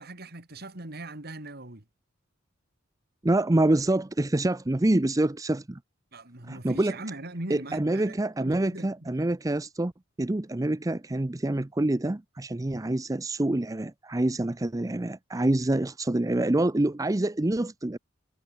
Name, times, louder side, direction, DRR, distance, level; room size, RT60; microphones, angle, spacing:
voice 1, 0.0-1.8 6.1-8.9, right 2 dB, 55° right, 3.0 m, -40 dB
voice 2, 3.2-5.8 6.5-6.9 7.5-9.9 10.2-18.0, right 1 dB, 15° right, 0.6 m, -26 dB
head